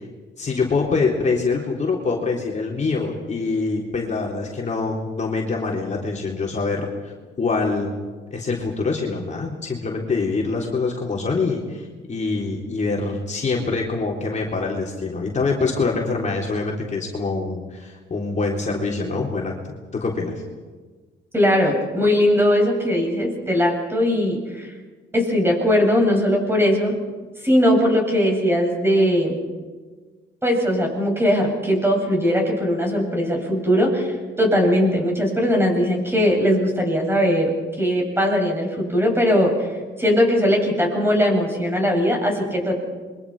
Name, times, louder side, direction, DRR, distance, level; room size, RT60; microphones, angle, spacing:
voice 1, 0.4-7.9 8.3-20.4, left 4 dB, 35° left, -2 dB, 3.8 m, -25 dB
voice 2, 21.3-24.7 25.1-26.9 27.4-29.4 30.4-37.5 37.8-39.7 40.0-42.8, equal, 10° right, 0 dB, 7.9 m, -19 dB
27.5 x 23.5 x 5.0 m, 1.4 s
cardioid pair, 90°, 20 cm